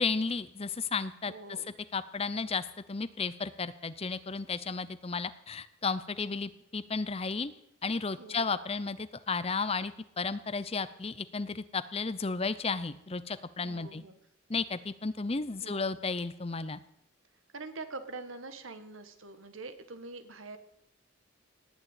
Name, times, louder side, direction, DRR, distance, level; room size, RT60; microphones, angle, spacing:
voice 1, 0.0-1.6 1.9-7.5 7.8-14.0 14.5-16.8, left 4 dB, 30° left, 14 dB, 0.7 m, -33 dB
voice 2, 1.2-1.7 8.2-8.5 13.6-14.2 15.6-16.0 17.5-20.6, right 3 dB, 80° right, 10 dB, 1.5 m, -44 dB
18.5 x 6.8 x 8.9 m, 0.78 s
head